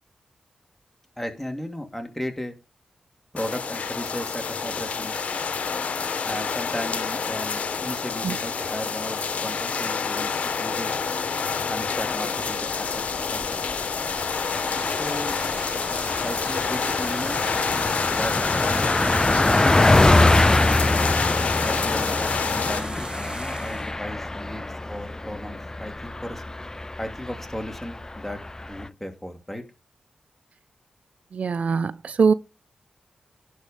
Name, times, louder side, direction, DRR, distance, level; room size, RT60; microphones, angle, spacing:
voice 1, 1.2-2.5 3.3-5.2 6.2-10.9 11.7-13.5 15.0-15.4 16.2-17.4 18.1-18.9 19.2-21.0 21.6-26.4 27.0-28.4 28.7-29.6, left 1 dB, 10° left, 2.6 m, -35 dB
sound 1, 3.4-22.8, left 5 dB, 75° left, 1.2 m, -28 dB
Car passing by, 13.4-13.8 14.2-14.3 14.6-28.9, left 2 dB, 25° left, 0.4 m, -24 dB
sound 2, 14.0-23.9, right 2 dB, 40° right, 2.6 m, -40 dB
voice 2, 31.3-32.3, right 5 dB, 70° right, 0.5 m, -22 dB
11.0 x 4.7 x 5.3 m
cardioid pair, 40°, 2 cm